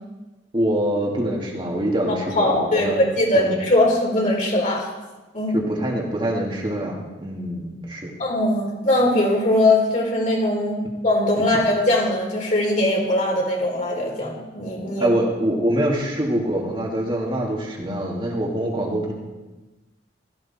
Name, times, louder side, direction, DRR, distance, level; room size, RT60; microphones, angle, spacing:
voice 1, 0.5-3.0 3.3-3.6 5.5-8.1 11.4-11.5 15.0-19.1, right 1 dB, 30° right, -2 dB, 2.4 m, -24 dB
voice 2, 2.4-4.9 5.3-5.6 8.2-10.8 11.0-15.1, left 1 dB, 45° left, -2 dB, 4.5 m, -20 dB
16.0 x 14.0 x 4.4 m, 1.1 s
head